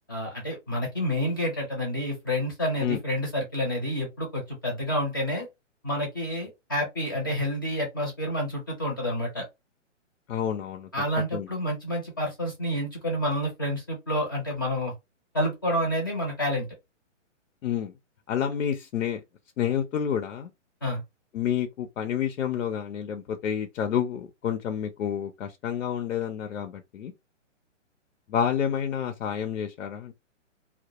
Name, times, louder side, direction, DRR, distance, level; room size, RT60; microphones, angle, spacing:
voice 1, 0.1-5.5 5.8-9.4 10.9-14.9 15.3-16.7 20.8-21.0, equal, 20° left, 0.5 m, -29 dB
voice 2, 10.3-10.9 11.3-11.5 17.6-17.9 18.3-19.2 19.6-20.5 21.3-27.1 28.3-30.1, left 9 dB, 85° left, 0.6 m, -29 dB
2.1 x 2.0 x 2.8 m
hypercardioid pair, 165°, 38 cm